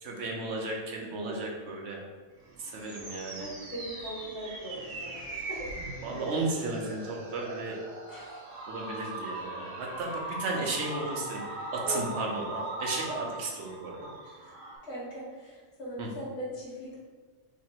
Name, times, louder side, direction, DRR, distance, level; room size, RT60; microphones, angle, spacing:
voice 1, 0.0-2.0 2.6-3.5 6.0-7.8 8.7-11.4 11.7-14.0 16.0-16.1, right 2 dB, 65° right, -1 dB, 1.0 m, -34 dB
sound 1, 2.4-14.8, right 2 dB, 80° right, 1.3 m, -40 dB
voice 2, 3.4-5.2 5.5-5.7 8.1-8.6 11.8-12.3 13.1-13.2 14.2-14.5 14.8-17.0, right 1 dB, 60° left, -6 dB, 1.7 m, -40 dB
3.3 x 2.9 x 4.4 m, 1.4 s
omnidirectional pair, 1.3 m